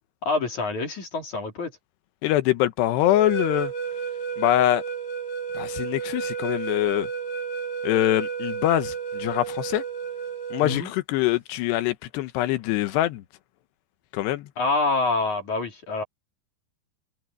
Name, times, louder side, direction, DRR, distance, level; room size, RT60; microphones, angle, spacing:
voice 1, 0.2-1.7 10.6-10.9 14.6-16.0, left 3 dB, 45° left, 4.8 m, -26 dB
voice 2, 2.2-3.7 4.4-4.8 5.5-7.1 7.8-9.8 10.5-13.2 14.1-14.5, left 14 dB, 85° left, 3.1 m, -24 dB
sound 1, 3.0-10.8, right 6 dB, 70° left, 7.8 m, -31 dB
omnidirectional pair, 4.8 m